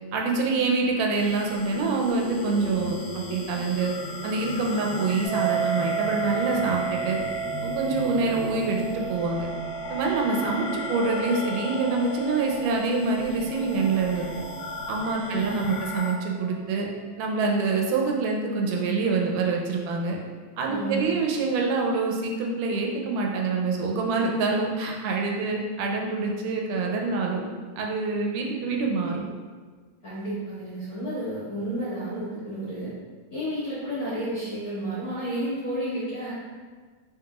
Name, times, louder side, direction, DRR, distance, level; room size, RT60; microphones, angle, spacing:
voice 1, 0.1-3.9 4.2-7.2 7.6-9.5 9.9-14.4 14.9-16.9 17.2-20.2 20.6-27.4 27.8-29.2, right 4 dB, 85° right, 0 dB, 2.1 m, -26 dB
sound 1, 1.2-16.1, left 2 dB, 80° left, 1.8 m, -36 dB
sound 2, 5.2-16.2, right 8 dB, 40° left, 1.4 m, -34 dB
voice 2, 15.2-15.8 20.7-21.2 30.0-32.9 33.3-36.3, right 1 dB, 60° left, -10 dB, 1.3 m, -31 dB
4.7 x 4.2 x 2.3 m, 1.5 s
omnidirectional pair, 3.7 m